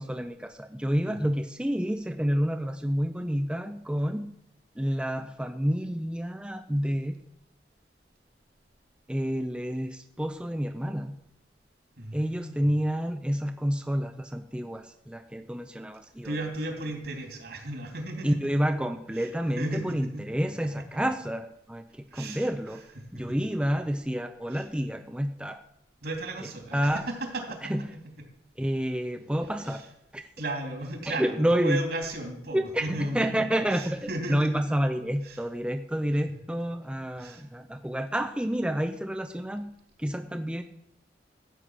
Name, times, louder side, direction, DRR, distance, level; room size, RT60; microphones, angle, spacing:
voice 1, 0.0-4.4 4.8-7.2 9.1-11.2 12.1-16.4 18.2-22.8 23.1-25.6 26.7-27.0 27.7-27.8 28.6-29.8 30.1-30.3 31.1-31.8 32.5-40.6, equal, 5° right, 6 dB, 0.5 m, -29 dB
voice 2, 1.0-1.3 12.0-12.6 16.2-18.4 19.1-19.3 19.6-20.0 22.1-22.5 23.1-23.2 24.5-24.6 26.0-27.7 29.6-29.8 30.4-33.3 33.7-34.5 35.2-35.4 37.1-37.4, right 1 dB, 65° right, 3 dB, 3.1 m, -35 dB
14.0 x 8.4 x 6.3 m, 0.77 s
head